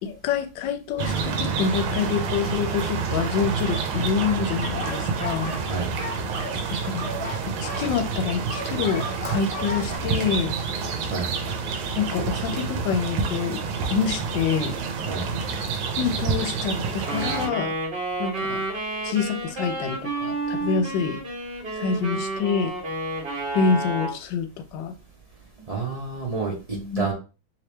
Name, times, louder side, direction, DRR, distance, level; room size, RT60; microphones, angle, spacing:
voice 1, 0.0-5.5 6.7-7.1 7.5-10.5 12.0-13.6 13.9-14.8 16.0-17.7 18.2-18.6 19.0-21.2 21.8-22.7 23.5-24.9 26.7-27.1, left 6 dB, 75° left, 8 dB, 1.2 m, -26 dB
sound 1, 1.0-17.5, right 5 dB, 75° right, 1.3 m, -28 dB
sound 2, 4.6-5.7 6.0-10.0, left 1 dB, 5° left, 1.3 m, -35 dB
voice 2, 5.6-5.9 11.0-11.3 15.0-15.3 25.7-26.5 26.9-27.1, right 4 dB, 55° right, -3 dB, 0.4 m, -29 dB
Wind instrument woodwind instrument, 17.1-24.2, right 2 dB, 35° right, 1.3 m, -30 dB
3.1 x 3.0 x 3.2 m, 0.32 s
omnidirectional pair, 2.1 m